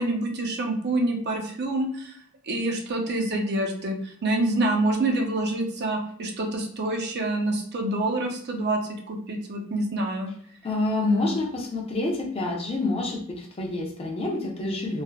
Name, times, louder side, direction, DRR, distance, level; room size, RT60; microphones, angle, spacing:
voice 1, 0.0-2.2 2.4-8.8 9.1-10.3 11.0-11.4, right 2 dB, 50° right, 2 dB, 0.5 m, -27 dB
voice 2, 10.6-15.0, left 2 dB, 25° left, 0 dB, 0.5 m, -27 dB
3.3 x 2.0 x 2.3 m, 0.66 s
head